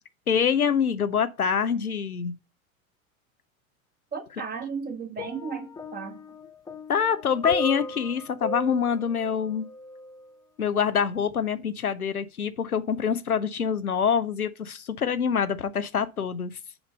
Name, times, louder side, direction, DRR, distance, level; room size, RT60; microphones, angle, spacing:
voice 1, 0.3-2.3 6.9-9.7 10.6-16.5, left 7 dB, 90° left, 0.6 m, -25 dB
voice 2, 4.1-6.2, right 5 dB, 20° right, 1.6 m, -35 dB
sound 1, 5.2-10.3 11.2-11.4, left 2 dB, 10° left, 0.7 m, -36 dB
5.9 x 5.1 x 5.2 m
figure-of-eight pair, 85°, 42 cm